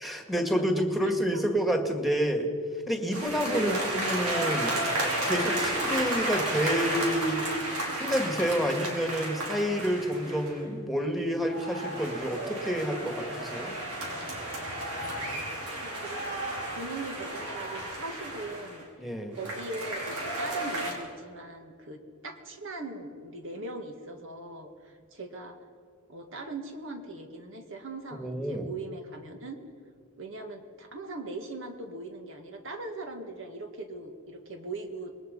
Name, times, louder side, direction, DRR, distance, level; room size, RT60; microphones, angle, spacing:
voice 1, 0.0-2.5 2.9-4.7 5.2-7.5 8.0-13.7 19.0-19.4 28.1-28.7, equal, ahead, 4 dB, 2.0 m, -29 dB
voice 2, 1.0-1.4 3.5-3.9 5.9-6.1 15.1-15.4 15.8-16.4 16.8-18.9 19.4-25.6 26.1-29.6 30.2-35.1, right 2 dB, 60° right, 5 dB, 1.9 m, -40 dB
sound 1, 3.1-10.6 11.3-18.8 19.3-20.9, right 1 dB, 90° right, 5.0 m, -33 dB
26.5 x 21.0 x 5.5 m, 2.1 s
head